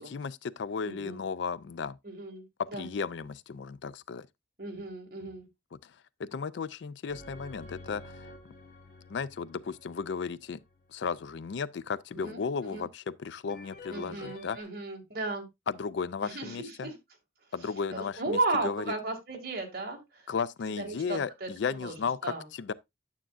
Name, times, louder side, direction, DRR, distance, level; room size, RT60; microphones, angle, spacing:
voice 1, 0.0-2.0 2.7-4.3 5.8-5.9 6.2-8.2 9.1-10.6 10.9-14.6 15.7-16.9 17.5-18.8 20.3-22.7, left 5 dB, 65° left, 0.4 m, -35 dB
voice 2, 0.9-1.2 2.0-2.4 2.7-2.9 4.6-5.5 12.1-12.9 13.9-15.5 16.2-17.0 17.9-20.3 20.8-21.5 21.8-22.0 22.2-22.4, right 2 dB, 50° right, 2.2 m, -35 dB
sound 1, 7.1-11.1 13.5-14.6, left 2 dB, 45° left, 1.3 m, -49 dB
9.2 x 7.3 x 2.5 m
head